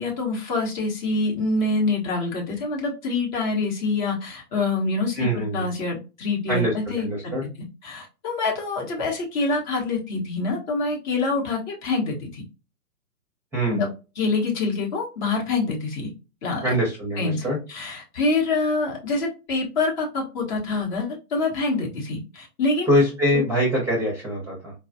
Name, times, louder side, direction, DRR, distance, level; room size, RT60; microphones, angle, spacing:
voice 1, 0.0-7.3 7.8-12.4 13.7-13.9 14.2-16.1 16.4-16.8 17.2-17.4 17.7-22.9, left 3 dB, 30° left, 0 dB, 1.0 m, -26 dB
voice 2, 5.2-5.7 6.5-7.4 13.5-13.8 16.6-17.6 22.9-24.7, equal, 5° right, -2 dB, 0.8 m, -23 dB
4.4 x 2.3 x 2.6 m, 0.30 s
figure-of-eight pair, 125°, 47 cm